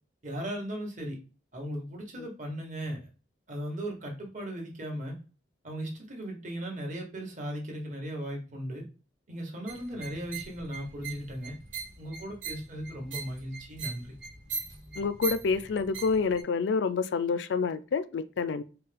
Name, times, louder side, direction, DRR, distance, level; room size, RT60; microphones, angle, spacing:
voice 1, 0.2-1.2 1.5-3.0 3.5-5.2 5.6-8.8 9.3-11.5 12.0-14.2, equal, 45° right, 1.3 m, -37 dB
sound 1, 9.7-16.4, right 4 dB, 85° right, 1.3 m, -41 dB
voice 2, 15.0-18.6, left 5 dB, 70° left, 0.3 m, -28 dB
4.5 x 2.2 x 3.3 m
head